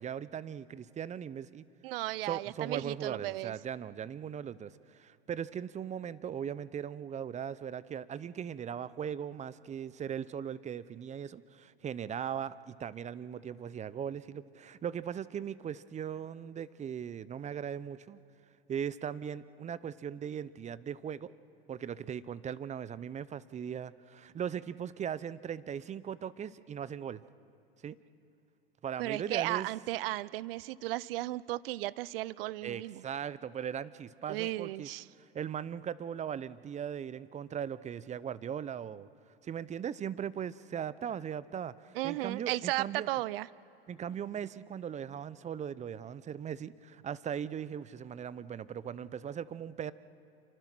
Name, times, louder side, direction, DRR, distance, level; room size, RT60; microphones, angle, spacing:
voice 1, 0.0-1.6 2.3-18.2 18.7-21.3 21.7-27.2 27.8-28.0 28.8-29.7 32.6-34.9 35.3-39.1 39.4-43.1 43.9-49.9, right 8 dB, 25° right, 18 dB, 0.7 m, -39 dB
voice 2, 1.8-3.5 29.0-33.0 34.3-35.0 42.0-43.5, right 17 dB, 65° right, 20 dB, 0.7 m, -35 dB
28.0 x 24.0 x 6.1 m, 2.7 s
hypercardioid pair, 95°, 31 cm